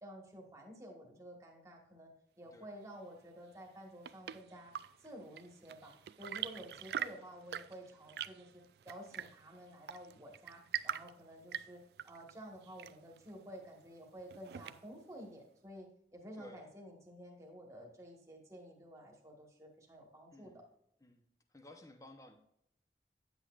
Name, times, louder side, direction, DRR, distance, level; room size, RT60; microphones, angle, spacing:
voice 1, 0.0-2.1 2.4-4.7 5.0-15.9 16.1-20.6, equal, 15° right, 0 dB, 1.4 m, -52 dB
Chirp tweet / Engine / Tap, 3.6-15.1, right 9 dB, 65° right, 0.3 m, -45 dB
voice 2, 16.4-16.7 20.3-20.6 21.0-21.3 21.5-22.4, left 1 dB, 20° left, 6 dB, 0.8 m, -55 dB
9.5 x 8.2 x 2.4 m, 0.74 s
head